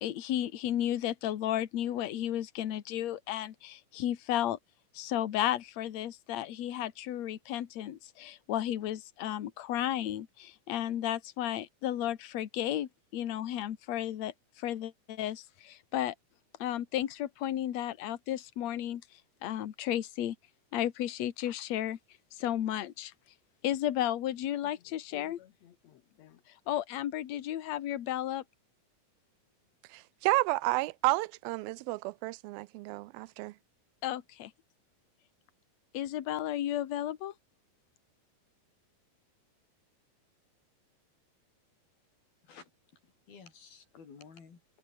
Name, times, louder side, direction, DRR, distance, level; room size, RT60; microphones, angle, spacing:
voice 1, 0.0-4.6 4.9-16.1 16.6-19.0 19.4-20.4 20.7-22.0 22.3-23.1 23.6-25.7 26.2-26.4 26.7-28.4 34.0-34.5 35.9-37.3, left 12 dB, 55° left, 2.4 m, -33 dB
voice 2, 29.9-33.5, right 21 dB, 85° right, 2.4 m, -31 dB
voice 3, 42.4-44.8, left 6 dB, 80° left, 6.7 m, -54 dB
omnidirectional pair, 4.2 m